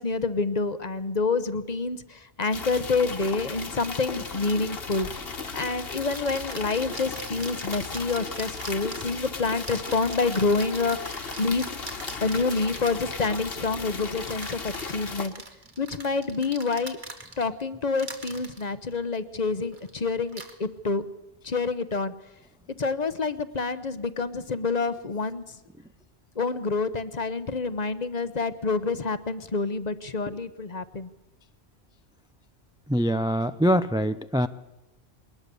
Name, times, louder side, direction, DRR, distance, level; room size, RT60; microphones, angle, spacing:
voice 1, 0.0-5.1 5.5-11.7 12.2-15.3 15.8-17.0 17.4-21.0 21.4-22.1 22.8-25.4 26.4-31.1, left 4 dB, 40° left, 13 dB, 1.0 m, -27 dB
sound 1, 2.5-15.3, left 4 dB, 60° left, 1.7 m, -36 dB
sound 2, 5.0-5.2 6.0-13.2 14.2-17.6 18.0-18.6 19.7-19.9 20.3-20.5, right 2 dB, 45° right, 2.2 m, -42 dB
voice 2, 32.9-34.5, equal, 5° right, 12 dB, 0.4 m, -23 dB
22.0 x 19.5 x 6.9 m, 0.98 s
omnidirectional pair, 1.1 m